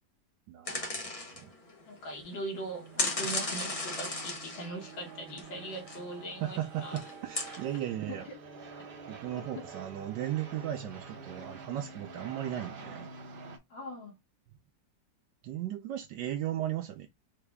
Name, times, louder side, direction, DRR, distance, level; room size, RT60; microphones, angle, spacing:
voice 1, 0.5-0.8 1.4-1.5 6.4-8.3 9.1-13.1 15.4-17.1, right 12 dB, 80° right, 1.2 m, -36 dB
sound 1, 0.7-1.8 2.1-2.5 3.0-6.0 6.4-6.5 6.9-7.6, left 2 dB, 35° left, 0.5 m, -35 dB
voice 2, 1.9-7.0 8.1-8.2 9.4-9.7 13.7-14.1, right 1 dB, 75° left, 1.7 m, -41 dB
sound 2, 2.6-13.6, right 4 dB, 60° right, 0.5 m, -47 dB
4.0 x 2.9 x 3.3 m
omnidirectional pair, 2.0 m